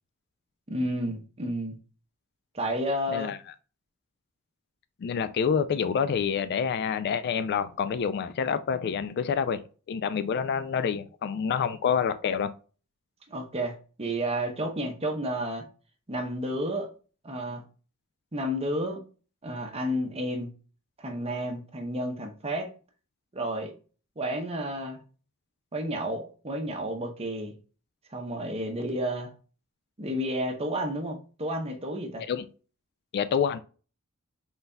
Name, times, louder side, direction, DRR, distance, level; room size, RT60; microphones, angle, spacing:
voice 1, 0.7-1.8 2.5-3.3 13.3-15.6 16.1-16.9 17.2-17.6 18.3-19.0 19.4-20.5 21.0-22.7 23.3-23.7 24.2-25.0 25.7-27.5 28.1-29.3 30.0-32.2, equal, 30° right, 0.8 m, -31 dB
voice 2, 5.0-9.6 9.9-12.5 32.3-32.5 33.1-33.6, left 7 dB, 50° left, 0.3 m, -27 dB
3.9 x 3.9 x 2.2 m
head